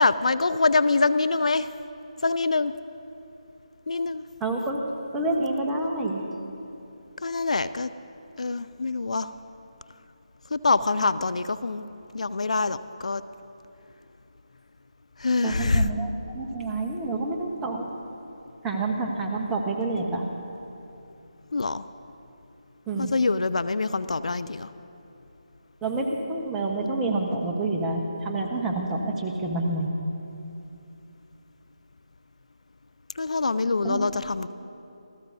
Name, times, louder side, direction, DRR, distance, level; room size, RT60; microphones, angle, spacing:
voice 1, 0.0-1.7 2.2-2.7 3.9-4.2 7.2-7.9 8.4-9.3 10.5-11.8 12.1-13.2 15.2-15.9 21.5-21.9 23.0-24.7 33.2-34.5, left 3 dB, 65° left, 14 dB, 0.4 m, -25 dB
voice 2, 4.4-4.8 5.1-6.2 15.4-17.9 18.6-20.3 22.9-23.1 25.8-29.9 33.8-34.0, right 2 dB, 10° right, 0 dB, 1.1 m, -28 dB
27.5 x 14.5 x 2.7 m, 2.9 s
figure-of-eight pair, 155°, 4 cm